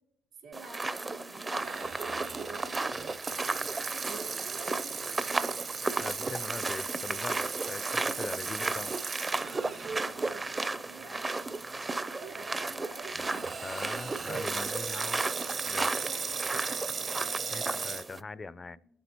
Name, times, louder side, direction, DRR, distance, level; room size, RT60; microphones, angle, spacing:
voice 1, 0.4-5.2 8.2-8.4 9.5-11.8 12.0-13.2 15.6-17.6 18.2-18.8, right 4 dB, 75° right, -3 dB, 3.7 m, -47 dB
sound 1, 0.5-18.2, right 3 dB, 25° right, 0.5 m, -34 dB
Water tap faucet / Sink (filling or washing), 1.6-10.0 10.4-10.5 11.3-11.6 13.1-18.0, right 5 dB, 50° right, 0.8 m, -37 dB
voice 2, 6.0-8.9 13.6-15.2 15.7-15.9 17.5-18.8, left 3 dB, 30° left, 18 dB, 0.4 m, -41 dB
22.0 x 8.3 x 2.9 m, 0.82 s
cardioid pair, 90°, 0 cm